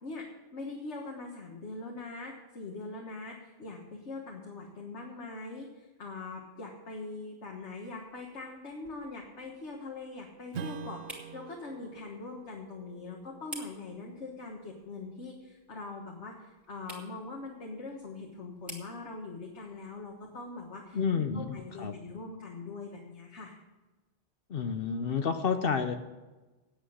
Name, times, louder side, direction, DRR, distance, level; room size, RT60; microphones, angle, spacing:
voice 1, 0.0-23.5, left 3 dB, 80° left, 0 dB, 1.7 m, -42 dB
sound 1, 7.5-22.3, equal, ahead, 2.7 m, -54 dB
Strum, 10.5-15.5, right 7 dB, 70° right, 1.0 m, -46 dB
voice 2, 20.9-22.0 24.5-25.9, left 6 dB, 60° left, 8 dB, 0.9 m, -30 dB
9.8 x 8.2 x 7.8 m, 1.2 s
omnidirectional pair, 1.2 m